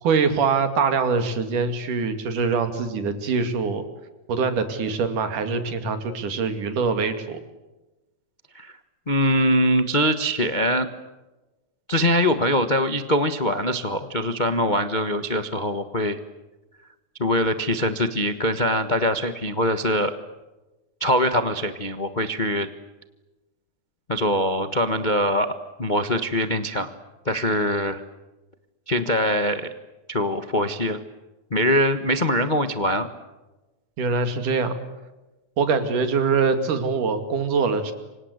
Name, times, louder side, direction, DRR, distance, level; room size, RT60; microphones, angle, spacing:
voice 1, 0.0-3.8 4.3-7.4 34.0-34.8 35.6-37.9, right 5 dB, 90° right, 9 dB, 4.0 m, -23 dB
voice 2, 9.1-10.9 11.9-16.2 17.2-20.1 21.0-22.7 24.1-25.5 25.8-26.9 27.2-28.0 28.9-29.7 30.1-31.0 31.5-33.1, equal, 50° left, 9 dB, 0.5 m, -23 dB
28.5 x 25.5 x 8.1 m, 1.1 s
omnidirectional pair, 3.5 m